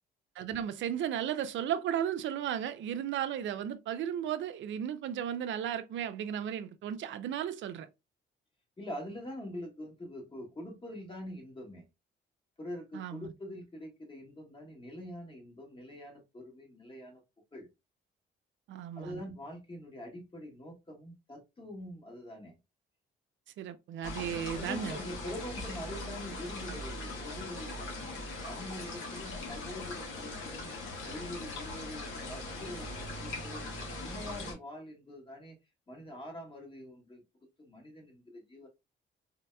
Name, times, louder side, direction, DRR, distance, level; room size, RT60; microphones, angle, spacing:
voice 1, 0.4-7.9 12.9-13.3 18.7-19.2 23.6-25.0, right 9 dB, 70° right, 0.5 m, -35 dB
voice 2, 8.8-11.8 12.6-17.2 17.5-17.7 18.9-22.6 24.2-28.0 28.4-30.7 31.0-33.7 34.0-35.5 35.9-37.2 37.6-38.7, left 1 dB, 25° left, 1.6 m, -44 dB
sound 1, 24.0-34.5, left 2 dB, 75° left, 1.5 m, -40 dB
4.0 x 2.8 x 2.2 m
cardioid pair, 90°, 20 cm